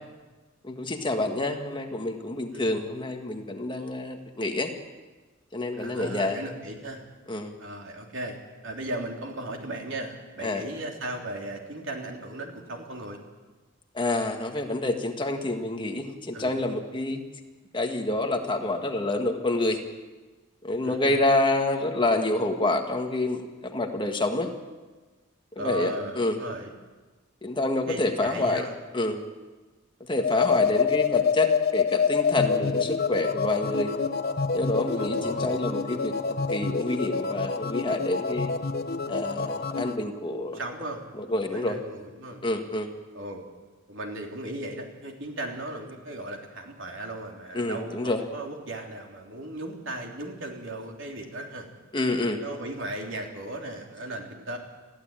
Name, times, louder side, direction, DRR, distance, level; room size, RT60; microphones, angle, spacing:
voice 1, 0.6-4.7 5.5-6.4 7.3-7.5 10.4-10.6 13.9-17.2 17.7-19.8 20.6-23.4 23.7-24.5 25.5-26.4 27.4-28.6 28.9-29.2 30.1-33.9 34.5-36.1 36.5-38.5 39.1-40.6 41.1-41.8 42.4-42.9 47.5-48.2 51.9-52.4, left 2 dB, 25° left, 4 dB, 1.6 m, -27 dB
voice 2, 5.7-7.0 7.6-8.4 8.6-13.2 16.3-16.5 20.8-21.2 25.6-26.7 27.9-28.8 32.5-32.9 35.0-35.6 40.5-41.0 41.4-42.4 43.1-43.4 43.9-51.7 52.4-54.6, right 1 dB, 65° right, 2 dB, 3.4 m, -36 dB
sound 1, 30.1-40.0, left 5 dB, 50° left, 0.8 m, -27 dB
21.0 x 15.0 x 9.0 m, 1.3 s
head